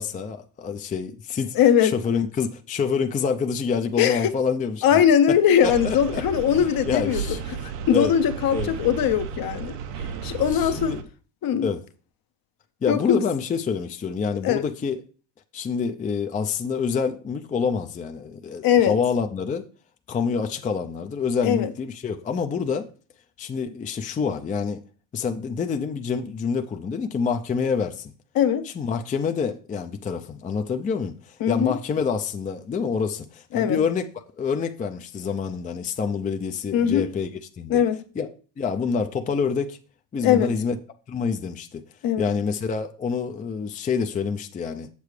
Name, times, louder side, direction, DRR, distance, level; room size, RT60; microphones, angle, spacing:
voice 1, 0.0-1.6 1.8-4.8 5.3-5.4 5.6-6.2 6.6-7.4 7.9-8.1 8.5-8.7 10.5-11.0 11.6-11.8 12.8-15.0 15.5-19.7 20.1-22.9 23.4-24.8 25.1-28.1 28.8-34.1 34.4-37.3 37.6-37.8 38.2-38.3 38.6-39.8 40.1-40.8 41.1-41.8 42.2-44.9, left 6 dB, 20° left, 0.4 m, -27 dB
voice 2, 1.5-1.9 4.0-4.3 4.8-7.2 7.6-9.8 10.2-11.0 11.4-11.7 12.9-13.2 14.4-14.7 18.6-19.0 21.4-21.7 28.3-28.7 31.4-31.8 33.5-33.8 36.7-37.1 37.7-38.0 40.2-40.5 42.0-42.3, left 9 dB, 50° left, 0.8 m, -20 dB
sound 1, 5.6-11.0, right 6 dB, 70° right, 0.9 m, -33 dB
7.2 x 6.8 x 3.2 m
supercardioid pair, 95°, 46 cm